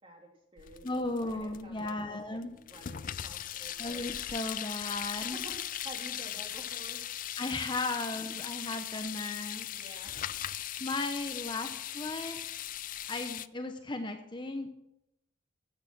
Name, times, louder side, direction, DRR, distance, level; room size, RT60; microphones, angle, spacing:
voice 1, 0.0-4.0 5.1-7.0 8.1-8.3 9.7-10.1, right 1 dB, 30° right, 1 dB, 2.8 m, -50 dB
sound 1, 0.6-2.0 2.4-13.5, left 11 dB, 45° left, 0.4 m, -39 dB
voice 2, 0.8-2.6 3.8-5.4 7.4-9.7 10.8-12.4 13.1-14.7, left 2 dB, 25° left, 6 dB, 0.9 m, -36 dB
13.5 x 8.6 x 6.0 m, 0.85 s
head